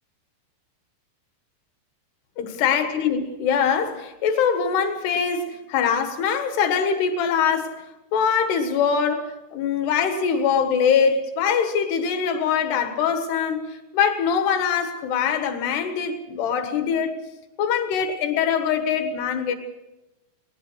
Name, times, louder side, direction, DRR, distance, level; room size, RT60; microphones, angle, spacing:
voice 1, 2.4-7.8 8.1-17.2 17.6-19.6, left 7 dB, 85° left, 3.7 m, -23 dB
21.0 x 19.5 x 6.3 m
omnidirectional pair, 4.6 m